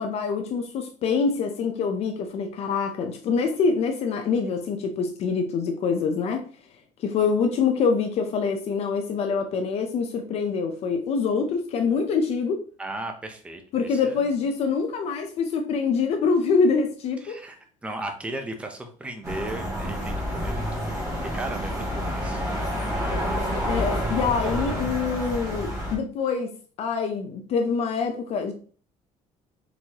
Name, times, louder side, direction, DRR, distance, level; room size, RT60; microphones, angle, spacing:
voice 1, 0.0-6.4 7.0-12.6 13.7-17.4 23.7-26.5 26.8-28.5, left 5 dB, 50° left, 0.6 m, -25 dB
voice 2, 12.8-14.3 17.2-17.6 17.8-22.4 22.7-23.4, right 2 dB, 10° right, 0.6 m, -36 dB
sound 1, 19.2-26.0, equal, 25° right, 1.7 m, -28 dB
4.5 x 4.0 x 2.9 m
cardioid pair, 165°, 14 cm